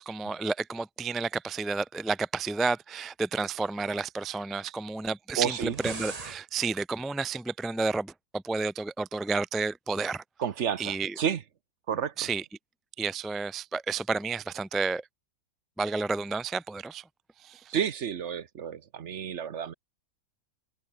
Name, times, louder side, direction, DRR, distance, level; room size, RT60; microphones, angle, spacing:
voice 1, 0.0-10.2 10.8-11.1 12.2-12.4 13.0-15.0 15.8-17.0 17.4-17.7, right 4 dB, ahead, 0.4 m, -31 dB
sound 1, 5.4-6.4, right 3 dB, 25° right, 1.4 m, -39 dB
voice 2, 5.4-5.8 10.4-11.4 11.9-12.3 17.7-19.7, right 8 dB, 55° right, 1.1 m, -31 dB
omnidirectional pair, 1.5 m